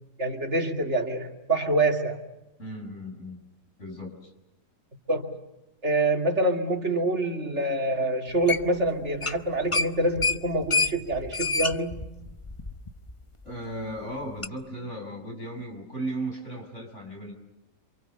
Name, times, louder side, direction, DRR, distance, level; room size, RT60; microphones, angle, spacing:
voice 1, 0.2-2.2 5.1-5.4 5.8-12.0, right 2 dB, 45° right, 4 dB, 3.0 m, -26 dB
voice 2, 2.6-3.4 3.8-4.3 13.4-17.3, right 1 dB, 45° left, 2 dB, 6.6 m, -36 dB
sound 1, 8.5-8.9 9.1-9.4 9.7-13.1 13.5-13.6 14.4-14.5, left 3 dB, 25° left, 0.8 m, -27 dB
28.5 x 27.5 x 6.9 m, 0.98 s
omnidirectional pair, 1.7 m